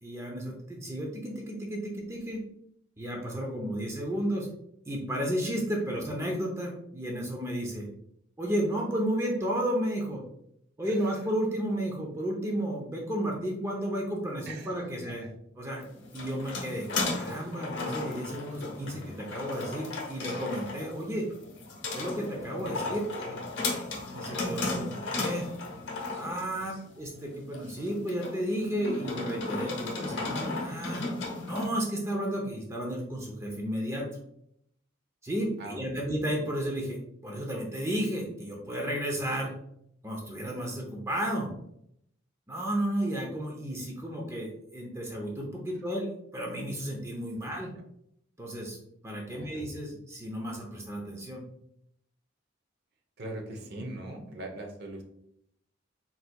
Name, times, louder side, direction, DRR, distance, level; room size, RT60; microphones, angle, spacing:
voice 1, 0.0-2.4 3.0-4.5 4.9-7.9 8.4-10.2 10.8-15.2 15.6-15.8 16.1-21.3 21.9-23.0 23.3-23.4 24.1-25.5 26.1-31.0 31.4-34.1 35.2-39.5 40.0-41.5 42.5-47.7 48.4-48.8 49.0-51.4, equal, 15° right, -1 dB, 0.6 m, -33 dB
voice 2, 10.8-11.2 14.5-15.4 18.8-19.3 22.8-23.0 26.6-26.7 35.6-36.1 47.4-47.5 49.3-49.7 53.2-55.0, right 1 dB, 55° right, 2 dB, 0.8 m, -42 dB
sound 1, 15.8-31.7, left 3 dB, 65° left, 1.0 m, -35 dB
4.4 x 3.9 x 2.3 m, 0.74 s
head